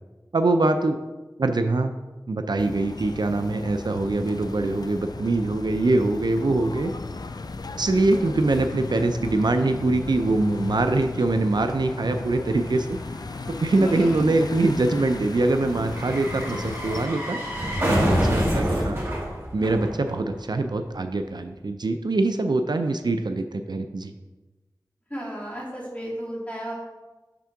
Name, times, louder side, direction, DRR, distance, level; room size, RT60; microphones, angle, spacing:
voice 1, 0.3-1.0 1.4-1.9 2.3-6.9 7.8-13.0 13.6-17.4 17.8-19.0 19.5-24.1, right 2 dB, 75° right, 7 dB, 0.4 m, -23 dB
sound 1, 2.6-17.1, left 3 dB, 60° left, 0.3 m, -36 dB
sound 2, 10.2-20.6 20.8-20.9, equal, 35° right, 1.9 m, -29 dB
voice 2, 13.8-14.3 25.1-26.7, equal, 20° left, -5 dB, 2.3 m, -33 dB
5.9 x 3.6 x 5.8 m, 1.2 s
wide cardioid pair, 45°, 7 cm